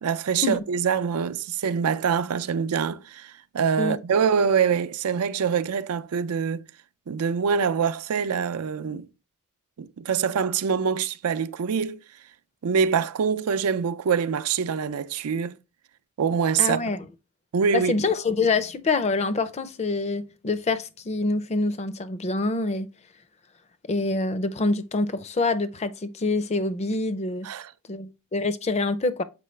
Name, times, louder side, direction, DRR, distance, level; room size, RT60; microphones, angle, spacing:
voice 1, 0.0-6.6 7.1-9.1 9.8-12.0 12.6-15.6 16.2-16.8 17.5-17.9 27.4-27.7, right 6 dB, 80° right, 0.4 m, -24 dB
voice 2, 16.6-17.1 17.7-22.9 23.9-27.5 27.9-29.2, left 3 dB, 30° left, 0.4 m, -26 dB
6.8 x 4.6 x 3.1 m
head